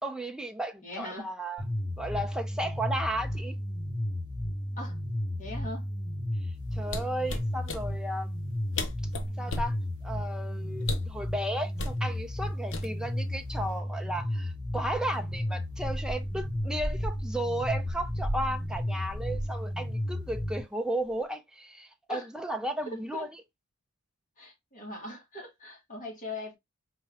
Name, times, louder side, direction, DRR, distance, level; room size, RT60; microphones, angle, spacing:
voice 1, 0.0-1.6 2.0-3.6 6.7-8.3 9.4-9.8 10.0-23.3, right 1 dB, 5° right, 0.5 m, -34 dB
voice 2, 0.8-1.3 4.8-5.0 5.4-5.9 22.1-22.3 22.9-23.3 24.4-26.6, left 1 dB, 35° left, 1.5 m, -40 dB
sound 1, 1.6-20.6, left 1 dB, 20° right, 1.0 m, -33 dB
sound 2, 6.8-7.8 8.5-8.6 8.8-9.8 10.8-11.2 11.8-12.0 12.7-13.2 13.5-13.8, left 2 dB, 60° left, 0.7 m, -34 dB
sound 3, 14.8-19.8 20.1-20.2 21.0-21.1, right 1 dB, 55° right, 1.0 m, -38 dB
4.5 x 2.4 x 3.2 m
head